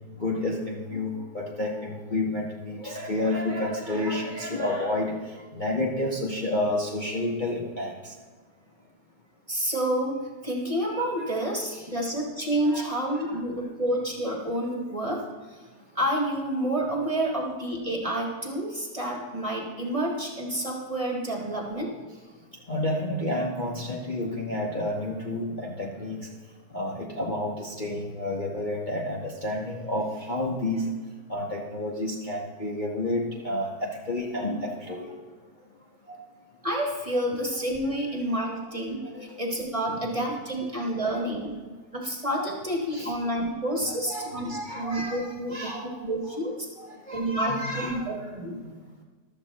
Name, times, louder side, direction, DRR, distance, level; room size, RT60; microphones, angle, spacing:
voice 1, 0.2-5.1 5.5-7.9 12.6-12.9 13.3-13.4 22.7-26.2 26.7-30.8 31.3-35.1 36.1-36.2 37.1-37.2 39.1-39.3 41.0-41.3 42.4-42.5 42.9-43.1 43.8-45.9 46.3-46.4 46.8-48.1 48.6-48.7, left 1 dB, 30° left, -3 dB, 1.2 m, -30 dB
voice 2, 9.5-10.2 10.4-15.2 15.5-15.6 15.9-21.9 36.6-41.5 41.9-45.7 46.0-46.7 47.1-48.6, right 1 dB, 20° right, -1 dB, 1.7 m, -29 dB
14.5 x 12.5 x 3.0 m, 1.4 s
omnidirectional pair, 1.8 m